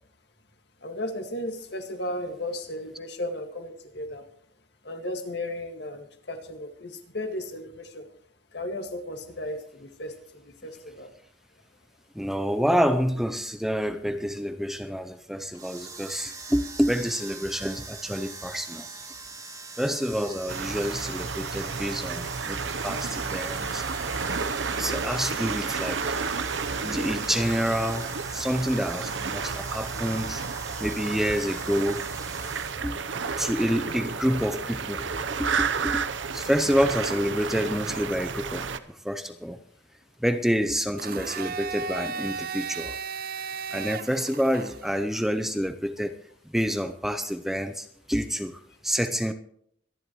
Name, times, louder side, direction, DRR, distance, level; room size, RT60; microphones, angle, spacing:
voice 1, 0.8-4.3 4.8-8.1 8.5-11.2, left 1 dB, 60° left, 5 dB, 2.0 m, -35 dB
voice 2, 12.2-18.9 19.8-23.8 24.7-26.1 26.8-30.4 30.8-32.0 32.8-33.0 33.4-35.1 35.4-36.1 36.3-39.6 40.2-43.0 43.7-46.2 46.5-49.3, equal, ahead, 9 dB, 0.6 m, -28 dB
sound 1, 15.5-32.8, right 4 dB, 20° right, 2.0 m, -42 dB
sound 2, 20.5-38.8, right 5 dB, 75° right, 0.8 m, -31 dB
Domestic sounds home sounds, 41.0-45.0, right 5 dB, 50° right, 0.5 m, -35 dB
25.0 x 10.5 x 3.1 m, 0.68 s
head